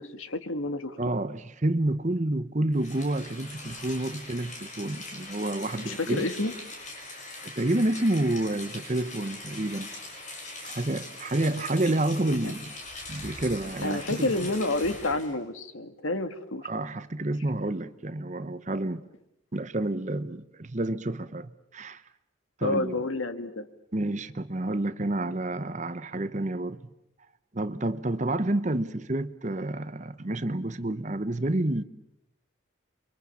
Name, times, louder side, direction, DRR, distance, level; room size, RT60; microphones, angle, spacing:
voice 1, 0.0-1.0 5.8-6.5 13.8-16.7 22.6-23.7 28.3-28.4, left 2 dB, 80° left, 1.7 m, -29 dB
voice 2, 1.0-6.3 7.4-9.9 10.6-12.7 13.1-14.3 16.6-19.0 19.5-22.0 22.6-23.0 23.9-26.8 27.5-31.8, right 1 dB, 35° right, 0.9 m, -29 dB
Rain, 2.7-15.3, left 2 dB, 35° left, 5.9 m, -41 dB
28.5 x 24.5 x 7.1 m
head